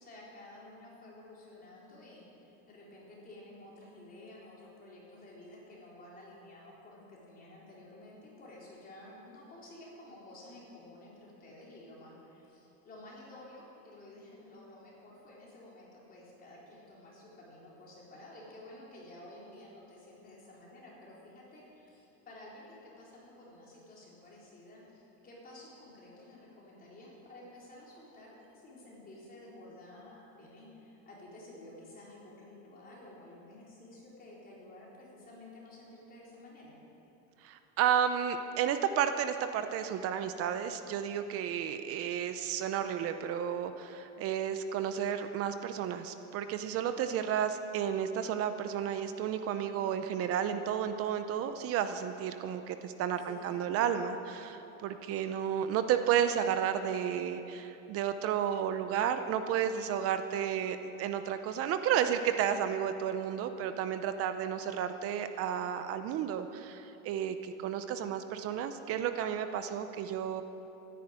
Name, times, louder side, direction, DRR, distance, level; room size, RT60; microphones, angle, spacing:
voice 1, 0.0-36.8 53.2-53.8, left 1 dB, 25° left, -5 dB, 4.0 m, -52 dB
voice 2, 37.4-70.4, right 9 dB, 40° right, 9 dB, 0.7 m, -32 dB
13.5 x 10.5 x 8.8 m, 3.0 s
cardioid pair, 160°, 38 cm